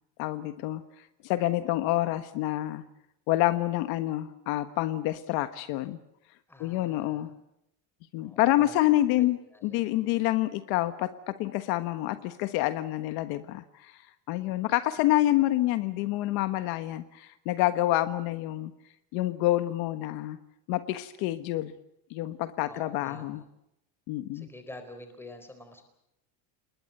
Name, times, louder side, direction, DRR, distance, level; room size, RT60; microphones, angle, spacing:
voice 1, 0.2-2.8 3.3-6.0 6.6-7.3 8.1-14.0 14.3-18.7 19.1-20.4 20.7-21.7 22.1-23.4 24.1-24.5, left 15 dB, 65° left, 10 dB, 1.4 m, -28 dB
voice 2, 6.5-7.3 8.2-8.9 9.2-9.3 9.5-9.8 22.7-23.4 24.3-25.8, left 1 dB, 5° left, 7 dB, 4.1 m, -47 dB
28.5 x 21.0 x 6.8 m, 0.83 s
cardioid pair, 170°, 41 cm